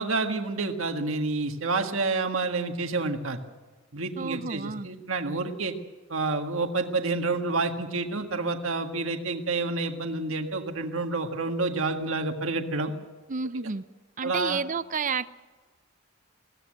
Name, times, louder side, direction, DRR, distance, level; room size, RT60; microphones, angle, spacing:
voice 1, 0.0-3.4 3.9-5.7 6.1-12.9 14.2-14.6, right 3 dB, 65° right, 5 dB, 1.7 m, -29 dB
voice 2, 4.2-4.9 13.3-13.8 14.2-15.3, right 5 dB, 40° right, 14 dB, 0.6 m, -30 dB
21.5 x 16.5 x 7.7 m, 1.3 s
head